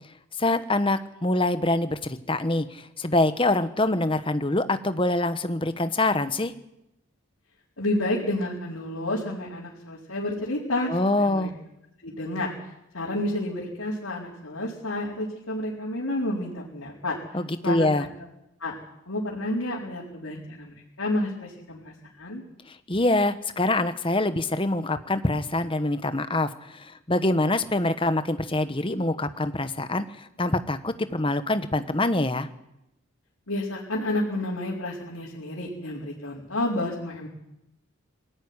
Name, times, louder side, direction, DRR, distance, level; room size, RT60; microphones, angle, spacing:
voice 1, 0.4-6.5 10.9-11.5 17.3-18.1 22.9-32.5, left 2 dB, 25° left, 11 dB, 1.1 m, -25 dB
voice 2, 7.8-11.5 12.0-12.5 12.9-17.2 17.6-18.1 18.6-18.8 19.1-22.4 33.5-37.3, left 1 dB, 80° left, -5 dB, 4.6 m, -30 dB
21.5 x 15.0 x 9.8 m, 0.86 s
head